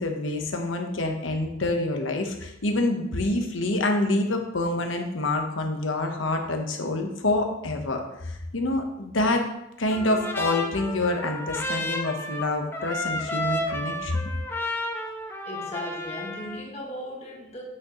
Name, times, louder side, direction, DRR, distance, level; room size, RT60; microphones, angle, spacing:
voice 1, 0.0-9.5 9.8-14.2, left 2 dB, 80° left, 4 dB, 1.1 m, -27 dB
Trumpet, 9.9-16.6, left 1 dB, 10° left, 0.7 m, -32 dB
voice 2, 15.5-17.6, left 1 dB, 35° left, -2 dB, 1.9 m, -37 dB
8.2 x 6.4 x 3.1 m, 0.85 s
head